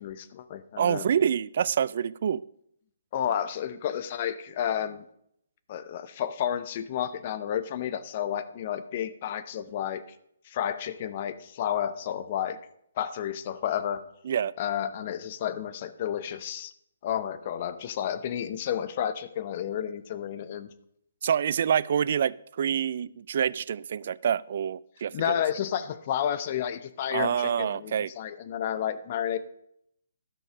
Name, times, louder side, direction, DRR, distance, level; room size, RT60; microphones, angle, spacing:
voice 1, 0.0-1.1 3.1-5.1 5.7-10.0 10.5-12.6 13.0-14.0 14.6-16.7 17.0-20.7 25.1-29.4, left 9 dB, 40° left, 13 dB, 0.7 m, -31 dB
voice 2, 0.8-2.4 14.3-14.5 21.2-25.3 27.1-28.1, right 8 dB, 55° right, 22 dB, 0.3 m, -27 dB
12.0 x 6.4 x 4.9 m, 0.72 s
figure-of-eight pair, 140°, 0 cm